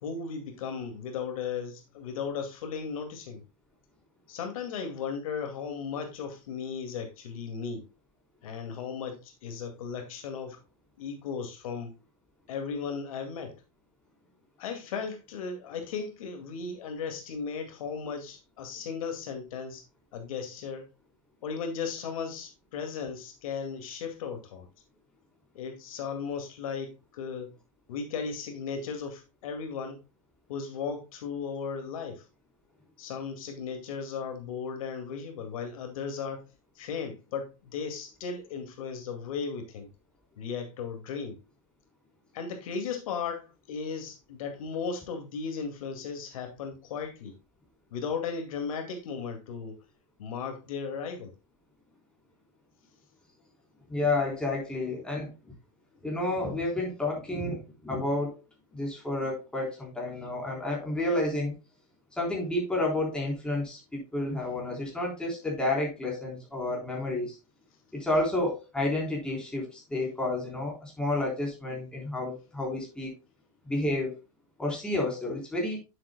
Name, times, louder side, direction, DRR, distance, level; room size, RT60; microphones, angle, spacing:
voice 1, 0.0-3.4 4.3-7.8 8.4-10.6 11.0-11.9 12.5-13.6 14.6-19.8 20.1-20.9 21.4-24.7 25.5-27.5 27.9-30.0 30.5-32.2 33.0-36.5 36.8-39.9 40.4-41.4 42.3-47.3 47.9-49.8 50.2-51.3, left 6 dB, 70° left, 2.2 m, -36 dB
voice 2, 53.9-55.3 56.0-58.4 58.7-61.5 62.1-67.4 67.9-73.2 73.6-74.2 74.6-75.8, left 2 dB, 5° left, 3.8 m, -30 dB
9.7 x 7.6 x 2.2 m
supercardioid pair, 135°, 18 cm